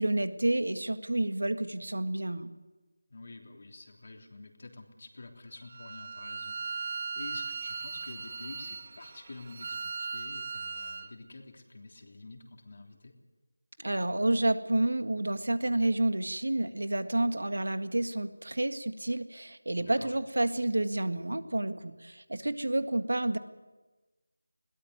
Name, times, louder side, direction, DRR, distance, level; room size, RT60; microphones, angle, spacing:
voice 1, 0.0-2.5 13.8-23.4, right 1 dB, 80° right, 10 dB, 1.8 m, -29 dB
voice 2, 3.1-13.2 19.8-20.1, left 2 dB, 50° left, 3 dB, 3.4 m, -48 dB
Bowed string instrument, 5.7-11.1, right 5 dB, 35° right, 1.3 m, -38 dB
21.5 x 18.0 x 9.6 m, 1.2 s
figure-of-eight pair, 170°, 0 cm